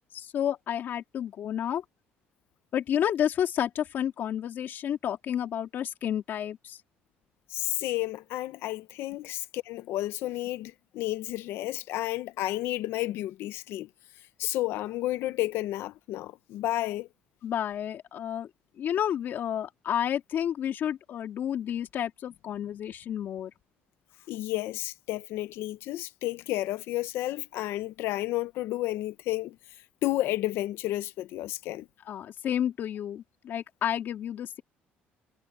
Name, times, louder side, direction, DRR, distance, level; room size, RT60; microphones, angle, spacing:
voice 1, 0.1-1.8 2.7-6.8 17.4-18.5 18.8-23.5 32.1-34.6, left 10 dB, 55° left, 3.4 m, -30 dB
voice 2, 7.5-13.9 14.4-17.1 24.3-29.6 30.0-31.9, left 16 dB, 85° left, 1.0 m, -31 dB
cardioid pair, 140°, 4 cm